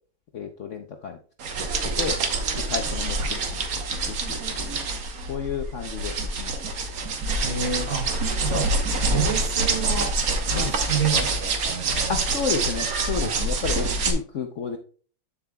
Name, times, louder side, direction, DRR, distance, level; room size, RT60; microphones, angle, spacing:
voice 1, 0.3-1.2 1.6-1.7 2.0-2.2 2.5-3.6 3.9-4.8 5.3-6.6 10.5-10.8 12.1-14.8, left 6 dB, 65° left, 4 dB, 0.7 m, -32 dB
sound 1, 1.4-14.1, right 3 dB, 55° right, 1.4 m, -26 dB
voice 2, 7.4-8.1 8.4-8.7 9.0-10.1 10.5-12.2 13.2-13.4, right 5 dB, 85° right, -2 dB, 4.0 m, -29 dB
8.2 x 7.5 x 2.2 m, 0.41 s
omnidirectional pair, 2.0 m